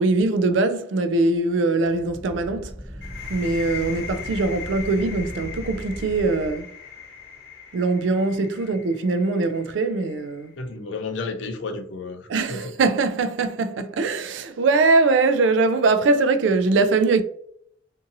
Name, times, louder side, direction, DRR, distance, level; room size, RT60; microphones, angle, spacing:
voice 1, 0.0-2.7 3.3-6.7 7.7-10.5 12.3-17.2, right 3 dB, 70° right, 0.3 m, -22 dB
sound 1, 1.8-6.6, equal, ahead, 0.5 m, -38 dB
sound 2, 3.0-10.5, left 7 dB, 55° left, 0.9 m, -40 dB
voice 2, 10.6-12.7, left 3 dB, 70° left, 0.5 m, -32 dB
2.6 x 2.6 x 2.6 m
head